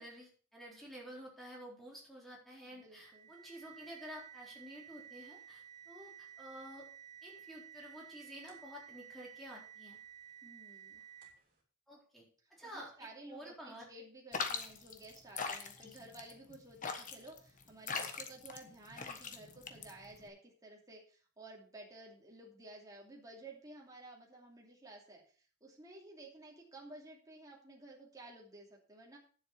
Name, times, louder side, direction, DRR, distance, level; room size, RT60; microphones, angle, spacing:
voice 1, 0.0-6.8 7.2-10.0 11.9-12.2 12.5-12.9 13.3-13.8 15.8-16.1, equal, ahead, -4 dB, 4.0 m, -51 dB
voice 2, 2.6-3.3 10.4-11.0 12.4-29.2, right 2 dB, 15° right, -2 dB, 2.7 m, -54 dB
sound 1, 3.0-11.5, right 9 dB, 40° right, 3.3 m, -54 dB
sound 2, 14.3-20.3, left 5 dB, 35° left, 1.3 m, -41 dB
10.0 x 7.7 x 5.8 m, 0.43 s
head